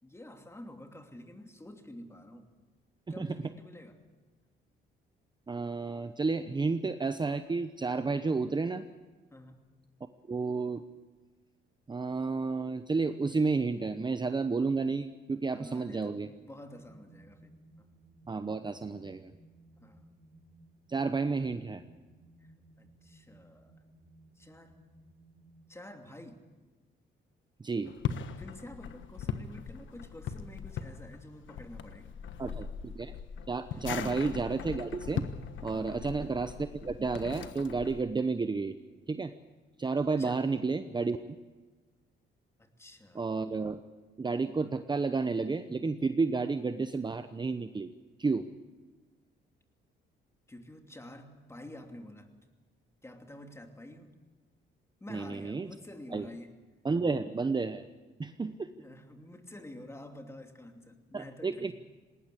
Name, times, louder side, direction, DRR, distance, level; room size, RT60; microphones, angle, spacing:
voice 1, 0.0-2.5 3.1-4.0 9.3-9.7 15.5-17.5 17.8-17.9 19.8-20.1 22.4-22.5 22.8-23.8 24.4-24.8 25.7-26.4 28.4-32.1 33.7-34.0 35.7-36.1 40.2-40.4 42.6-43.2 50.5-52.3 53.0-54.1 55.0-56.5 58.8-61.7, left 1 dB, 15° left, 4 dB, 2.8 m, -49 dB
voice 2, 3.1-3.4 5.5-8.8 10.3-10.8 11.9-16.3 18.3-19.3 20.9-21.8 27.6-27.9 32.4-33.1 33.5-35.2 35.6-36.5 36.8-38.7 39.1-39.3 39.8-41.2 43.1-43.8 44.2-47.9 48.2-48.5 55.1-55.7 56.1-56.3 56.8-57.8 58.2-58.7 61.1-61.7, right 4 dB, 20° right, 10 dB, 0.8 m, -31 dB
sound 1, 16.7-25.5, right 2 dB, 60° right, 4.9 m, -60 dB
sound 2, 27.8-38.0, left 8 dB, 75° left, 1.4 m, -40 dB
19.5 x 19.0 x 8.4 m, 1.3 s
cardioid pair, 90°, 20 cm